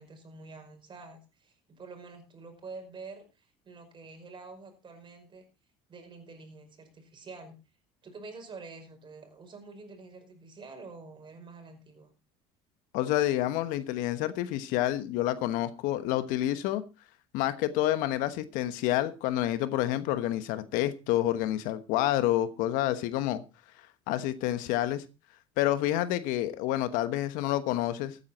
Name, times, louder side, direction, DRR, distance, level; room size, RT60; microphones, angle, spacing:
voice 1, 0.0-5.4 5.9-7.5 8.0-12.1, right 3 dB, 35° right, 5.3 m, -47 dB
voice 2, 12.9-16.8 17.3-23.4 24.1-25.0 25.6-28.2, left 13 dB, 75° left, 1.2 m, -28 dB
14.5 x 9.7 x 4.2 m
supercardioid pair, 90°, 14 cm